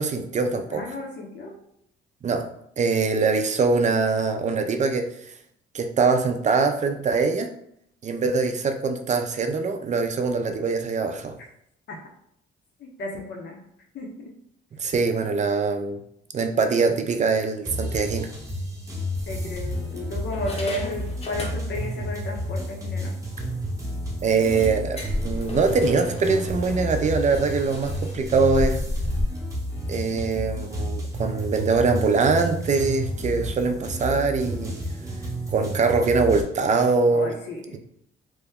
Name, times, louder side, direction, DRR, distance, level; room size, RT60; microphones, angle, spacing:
voice 1, 0.0-0.9 2.2-2.4 2.8-5.1 5.7-7.5 8.0-11.4 14.8-16.0 16.3-18.3 24.2-28.8 29.9-34.8 35.5-37.3, right 4 dB, 35° right, 6 dB, 0.4 m, -23 dB
voice 2, 0.7-1.6 11.9-12.0 12.8-13.6 13.9-14.1 19.3-23.1 37.1-37.8, left 1 dB, 60° left, 1 dB, 0.9 m, -33 dB
sound 1, 17.7-36.4, equal, 15° right, 0.8 m, -31 dB
sound 2, 18.3-18.5 19.2-19.8 20.3-22.0 22.3-22.4 22.8-22.9 23.3-23.4 24.3-29.2, left 1 dB, 30° left, 0.8 m, -33 dB
2.9 x 2.1 x 3.5 m, 0.73 s
cardioid pair, 90°, 20 cm